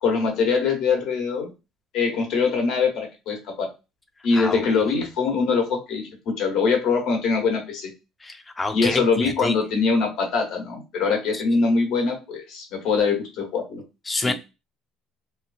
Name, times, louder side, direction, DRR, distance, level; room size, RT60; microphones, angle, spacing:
voice 1, 0.0-1.5 1.9-3.7 4.2-7.9 8.7-13.8 14.2-14.3, left 4 dB, 70° left, 2 dB, 1.3 m, -23 dB
voice 2, 8.2-9.0 9.4-9.5 11.3-11.4 14.1-14.3, left 3 dB, 15° left, 8 dB, 0.4 m, -26 dB
2.9 x 2.5 x 2.4 m, 0.27 s
cardioid pair, 135°, 0 cm